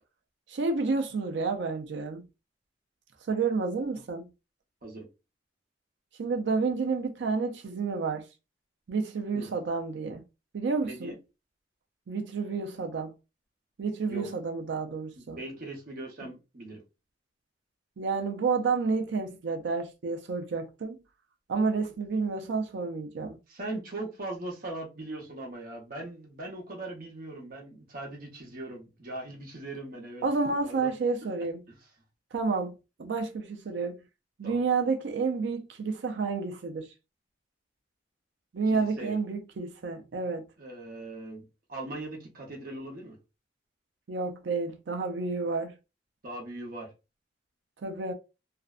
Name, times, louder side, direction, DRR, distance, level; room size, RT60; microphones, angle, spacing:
voice 1, 0.5-2.2 3.3-4.2 6.2-8.2 8.9-10.2 10.5-11.1 12.1-13.1 13.8-15.4 18.0-21.0 21.5-23.4 30.2-31.6 32.3-34.0 34.4-36.9 38.5-40.5 44.1-45.8 47.8-48.1, right 4 dB, 70° right, 0.4 m, -30 dB
voice 2, 10.8-11.2 14.1-14.3 15.3-16.8 23.5-30.2 30.6-30.9 31.7-31.8 34.4-34.6 38.7-39.2 40.6-43.2 46.2-46.9, right 2 dB, 55° right, 0.9 m, -40 dB
2.5 x 2.1 x 2.3 m
head